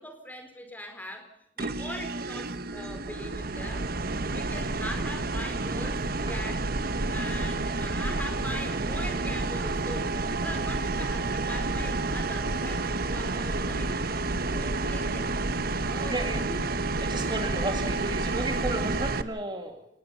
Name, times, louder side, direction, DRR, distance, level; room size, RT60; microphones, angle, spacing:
voice 1, 0.0-3.9 4.3-6.7 7.1-10.2 10.4-14.0 14.5-15.5 15.9-16.6, left 1 dB, 10° left, 6 dB, 4.4 m, -41 dB
sound 1, 1.6-19.2, right 3 dB, 50° right, 1.2 m, -30 dB
voice 2, 14.2-14.6 15.9-16.4 17.0-19.9, right 2 dB, 25° right, 5 dB, 2.1 m, -33 dB
29.0 x 20.0 x 5.6 m, 0.72 s
head